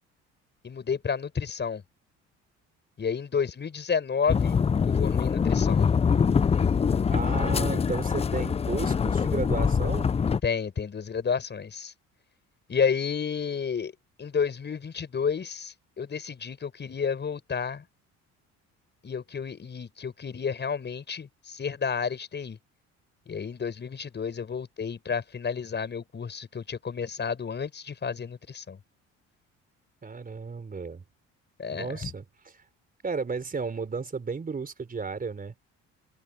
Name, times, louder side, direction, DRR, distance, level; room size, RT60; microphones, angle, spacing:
voice 1, 0.6-1.8 3.0-4.6 5.0-5.9 10.4-11.9 12.7-13.9 14.2-17.8 19.0-22.6 23.3-28.8 31.6-32.1, left 6 dB, 35° left, 6.7 m, -31 dB
sound 1, 4.3-10.4, left 6 dB, 20° left, 0.5 m, -24 dB
voice 2, 7.1-10.1 30.0-31.0 31.7-32.2 33.0-35.5, right 4 dB, 30° right, 4.4 m, -33 dB
supercardioid pair, 90°, 30 cm